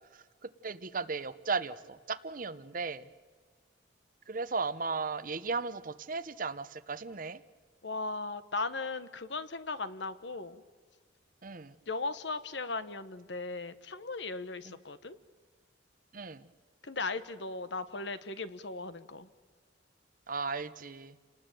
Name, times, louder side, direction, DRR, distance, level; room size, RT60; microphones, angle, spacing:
voice 1, 0.4-3.1 4.3-7.4 11.4-11.7 14.7-14.8 16.1-16.5 20.3-21.2, right 4 dB, 45° right, 13 dB, 0.9 m, -36 dB
voice 2, 7.8-10.6 11.9-15.2 16.8-19.3, left 3 dB, 65° left, 12 dB, 1.3 m, -37 dB
30.0 x 19.5 x 9.3 m, 1.5 s
head